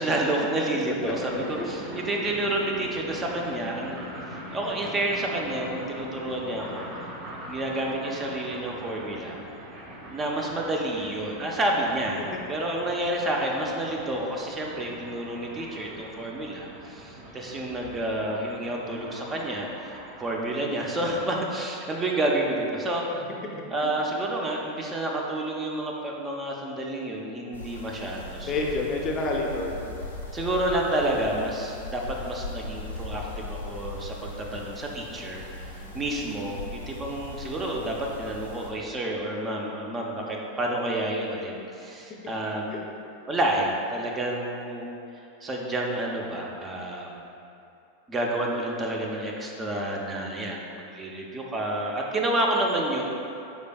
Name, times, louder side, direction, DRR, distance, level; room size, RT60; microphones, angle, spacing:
voice 1, 0.0-4.0 4.5-7.1 7.5-9.4 10.1-23.1 23.7-28.7 30.3-42.9 43.3-44.9 45.4-47.3 48.1-53.0, right 1 dB, 25° right, -1 dB, 0.6 m, -29 dB
sound 1, 1.0-20.5, equal, 45° right, 1.2 m, -42 dB
sound 2, 27.5-38.7, left 2 dB, 90° left, 0.6 m, -39 dB
voice 2, 28.4-29.9 35.7-36.0 42.1-42.2 42.7-42.8, left 2 dB, 35° left, 0 dB, 0.5 m, -29 dB
5.0 x 4.3 x 2.3 m, 2.7 s
hypercardioid pair, 90°, 0 cm